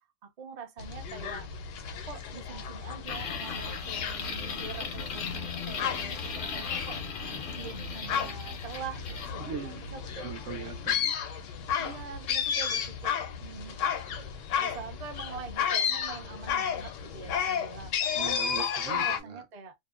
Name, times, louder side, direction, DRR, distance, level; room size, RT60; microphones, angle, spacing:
voice 1, 0.2-1.5 2.1-7.0 7.6-10.3 11.8-13.8 14.6-17.9 18.5-19.7, right 5 dB, 50° right, 0.4 m, -44 dB
sound 1, 0.8-19.2, left 7 dB, 90° left, 0.9 m, -33 dB
sound 2, 3.1-9.3, left 5 dB, 60° left, 0.6 m, -38 dB
voice 2, 9.4-9.9 10.2-11.2 11.5-11.6 18.2-19.4, right 8 dB, 80° right, 1.0 m, -40 dB
2.6 x 2.0 x 2.3 m
omnidirectional pair, 1.3 m